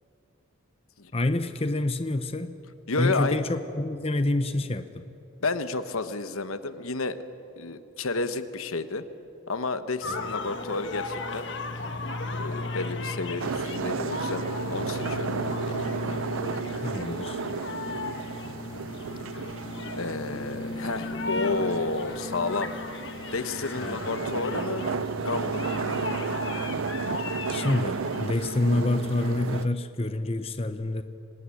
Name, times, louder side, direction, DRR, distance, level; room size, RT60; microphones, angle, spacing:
voice 1, 1.1-2.6 3.0-5.0 16.8-17.4 23.8-24.0 27.5-31.0, left 2 dB, 25° left, 9 dB, 0.8 m, -27 dB
voice 2, 2.9-3.4 5.4-7.2 7.6-9.0 9.5-11.5 12.4-14.4 14.7-15.8 20.0-22.7 23.3-24.9 25.2-25.8, left 3 dB, 80° left, 11 dB, 1.2 m, -31 dB
sound 1, 10.0-29.6, left 2 dB, 55° left, 1.8 m, -35 dB
sound 2, 13.4-29.7, right 5 dB, 70° right, 0.5 m, -34 dB
25.5 x 19.0 x 10.0 m, 2.9 s
head